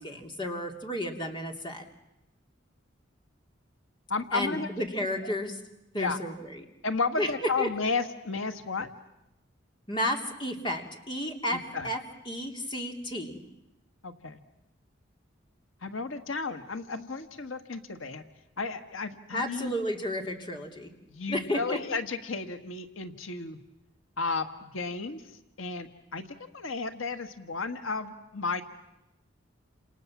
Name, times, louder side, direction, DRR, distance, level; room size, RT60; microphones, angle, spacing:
voice 1, 0.0-1.8 4.3-5.5 5.9-6.6 7.2-7.3 7.6-7.7 9.9-12.0 12.3-13.4 19.3-20.9 21.3-21.8, left 1 dB, 25° left, 3 dB, 2.9 m, -32 dB
voice 2, 4.1-4.7 5.9-6.2 6.8-8.9 11.5-11.9 14.0-14.4 15.8-18.2 18.6-19.7 21.1-23.6 24.2-25.2 25.6-26.2 26.5-28.6, left 4 dB, 85° left, 8 dB, 1.6 m, -33 dB
29.0 x 28.0 x 7.4 m, 0.90 s
head